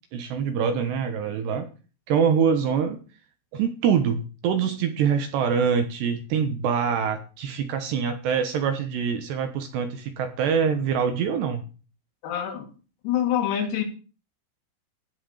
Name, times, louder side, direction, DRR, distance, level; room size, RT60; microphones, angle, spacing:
voice 1, 0.1-1.7 2.1-3.0 3.5-11.6, right 7 dB, 70° right, 7 dB, 2.8 m, -24 dB
voice 2, 12.2-12.7 13.0-13.8, left 10 dB, 85° left, 3 dB, 5.3 m, -25 dB
17.0 x 6.0 x 6.5 m, 0.35 s
omnidirectional pair, 6.0 m